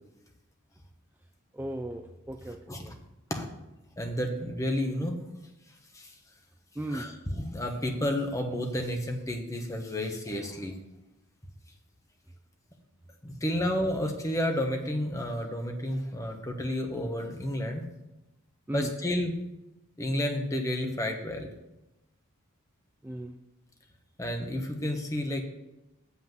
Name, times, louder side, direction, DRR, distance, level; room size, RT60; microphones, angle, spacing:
voice 1, 1.5-2.9 6.8-7.2 18.7-18.9 23.0-23.4, right 1 dB, 10° right, 5 dB, 0.3 m, -36 dB
voice 2, 4.0-5.2 5.9-6.1 6.9-10.7 13.2-17.8 18.7-19.4 20.0-21.5 24.2-25.4, left 1 dB, 15° left, 3 dB, 1.0 m, -31 dB
7.4 x 5.7 x 7.5 m, 0.96 s
head